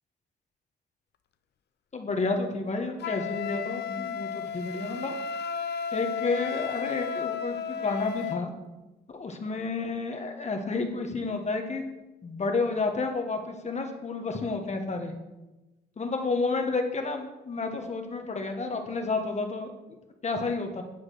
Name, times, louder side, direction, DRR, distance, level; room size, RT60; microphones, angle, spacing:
voice 1, 1.9-5.1 5.9-8.5 9.1-11.8 12.2-15.1 16.0-19.7 20.2-20.8, left 3 dB, 35° left, 4 dB, 1.3 m, -30 dB
Wind instrument woodwind instrument, 3.0-8.5, left 7 dB, 55° left, 0.5 m, -33 dB
9.6 x 4.8 x 6.4 m, 1.1 s
cardioid pair, 90°, 20 cm